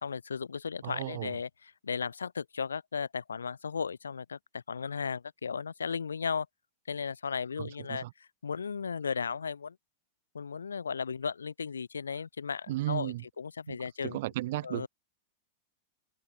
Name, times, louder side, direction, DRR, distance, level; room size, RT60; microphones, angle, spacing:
voice 1, 0.0-1.5 1.8-6.5 6.9-8.0 8.4-9.7 10.3-14.2 14.6-14.9, left 6 dB, 70° left, 1.1 m, -35 dB
voice 2, 0.8-1.3 7.6-8.1 12.7-13.2 13.7-13.8 14.0-14.9, right 17 dB, 50° right, 0.8 m, -34 dB
figure-of-eight pair, 95°, 0 cm